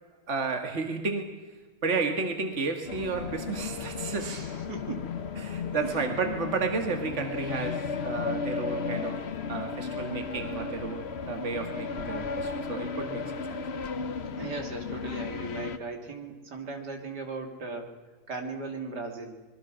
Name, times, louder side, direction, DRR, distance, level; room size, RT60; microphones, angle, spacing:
voice 1, 0.3-1.4 1.8-4.4 5.4-9.2 9.5-13.6, right 4 dB, 45° right, 5 dB, 2.2 m, -32 dB
sound 1, 2.9-15.8, left 5 dB, 45° left, 1.1 m, -34 dB
voice 2, 4.1-5.1 5.7-5.9 14.4-18.0 18.3-19.3, right 3 dB, 85° right, 3 dB, 3.4 m, -38 dB
25.5 x 22.0 x 6.3 m, 1.4 s
omnidirectional pair, 1.7 m